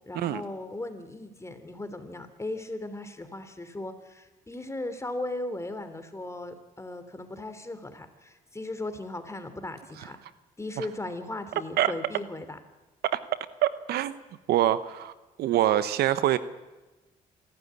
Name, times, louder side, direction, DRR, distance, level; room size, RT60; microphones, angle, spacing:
voice 1, 0.0-10.2 10.6-12.6, left 2 dB, 15° left, 9 dB, 3.3 m, -37 dB
voice 2, 13.6-14.1 14.5-15.1 15.4-16.4, right 12 dB, 80° right, 14 dB, 1.0 m, -24 dB
26.5 x 12.5 x 9.8 m, 1.1 s
supercardioid pair, 70°, 16 cm